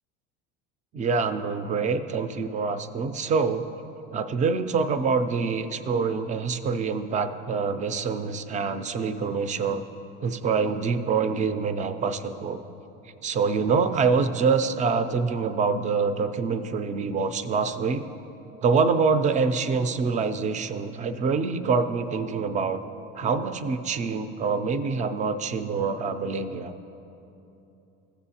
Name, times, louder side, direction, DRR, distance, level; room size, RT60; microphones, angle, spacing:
voice 1, 0.9-3.6 4.1-9.8 10.2-12.6 13.2-18.0 18.6-22.8 23.2-26.7, right 5 dB, 25° right, 10 dB, 0.4 m, -25 dB
14.5 x 7.0 x 2.8 m, 2.9 s
supercardioid pair, 115°, 30 cm